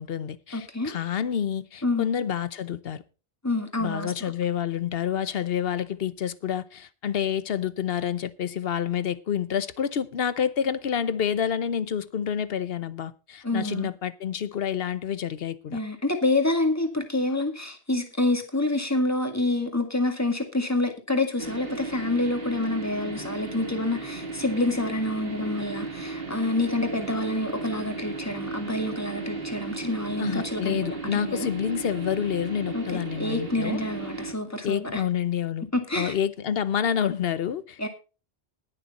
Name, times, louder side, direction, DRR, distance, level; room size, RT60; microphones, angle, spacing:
voice 1, 0.0-3.0 3.8-15.8 30.2-33.8 34.6-35.7 35.9-37.9, left 8 dB, 60° left, 0.9 m, -28 dB
voice 2, 0.5-1.0 1.8-2.1 3.4-4.3 13.4-13.9 15.7-31.5 32.7-35.0 35.7-36.1 37.8-37.9, left 2 dB, 15° left, 1.9 m, -27 dB
sound 1, 21.4-34.3, right 3 dB, 55° right, 2.1 m, -35 dB
19.5 x 6.7 x 4.1 m
omnidirectional pair, 1.1 m